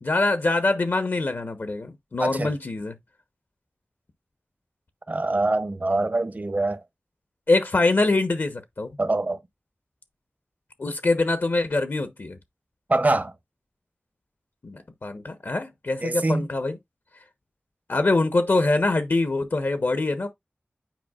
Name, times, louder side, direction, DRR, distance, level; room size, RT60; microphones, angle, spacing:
voice 1, 0.0-3.0 7.5-8.9 10.8-12.4 14.6-16.8 17.9-20.3, left 2 dB, 65° left, 1.0 m, -24 dB
voice 2, 2.2-2.5 5.1-6.8 9.0-9.4 12.9-13.3 16.0-16.5, right 2 dB, 40° right, 0.8 m, -24 dB
9.2 x 4.7 x 2.4 m
wide cardioid pair, 55°, 4 cm